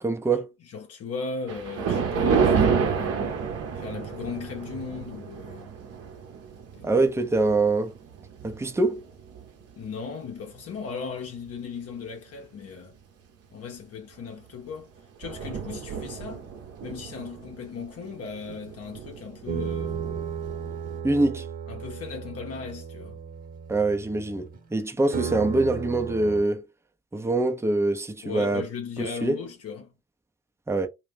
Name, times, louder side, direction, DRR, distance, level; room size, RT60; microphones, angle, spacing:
voice 1, 0.0-0.5 6.8-7.9 8.4-9.0 21.0-21.4 23.7-26.6 27.1-28.6 29.0-29.4 30.7-30.9, right 2 dB, 10° right, 0.7 m, -24 dB
voice 2, 0.6-3.2 3.7-5.7 6.7-6.9 9.8-12.9 13.5-14.9 15.2-16.5 16.8-20.0 21.7-23.2 28.2-29.9, left 5 dB, 50° left, 0.8 m, -37 dB
Thunder, 1.5-10.0 10.5-10.8 11.5-11.6 11.9-12.0 14.2-14.4 14.7-14.8 15.0-21.0, right 6 dB, 50° right, 0.8 m, -30 dB
sound 1, 19.5-24.7 25.1-26.4, right 6 dB, 25° right, 1.2 m, -35 dB
2.4 x 2.3 x 3.6 m
hypercardioid pair, 50°, 32 cm